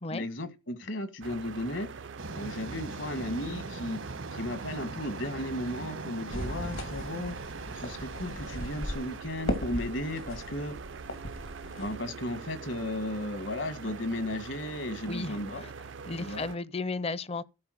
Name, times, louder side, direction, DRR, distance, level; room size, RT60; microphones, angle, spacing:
voice 1, 0.1-1.9 2.3-4.0 4.3-7.4 7.7-10.7 11.8-15.6 16.2-16.4, left 1 dB, 65° left, 1.5 m, -35 dB
sound 1, 1.2-16.6, right 5 dB, 65° right, 0.5 m, -44 dB
sound 2, 2.2-9.2, right 3 dB, 85° right, 1.3 m, -42 dB
sound 3, 6.3-12.0, left 1 dB, 85° left, 2.7 m, -37 dB
voice 2, 15.1-15.7 16.0-17.4, left 3 dB, 30° left, 0.5 m, -34 dB
13.5 x 4.6 x 6.2 m
head